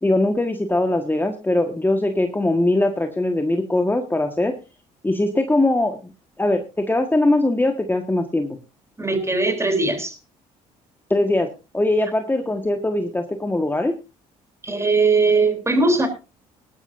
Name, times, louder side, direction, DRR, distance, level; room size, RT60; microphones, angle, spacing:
voice 1, 0.0-4.5 5.0-6.1 6.4-8.6 11.1-11.5 11.7-13.9, left 2 dB, 10° left, 5 dB, 1.5 m, -21 dB
voice 2, 9.0-10.2 14.6-16.1, right 3 dB, 15° right, 7 dB, 3.5 m, -19 dB
18.5 x 12.0 x 2.6 m, 0.29 s
supercardioid pair, 65°, 16 cm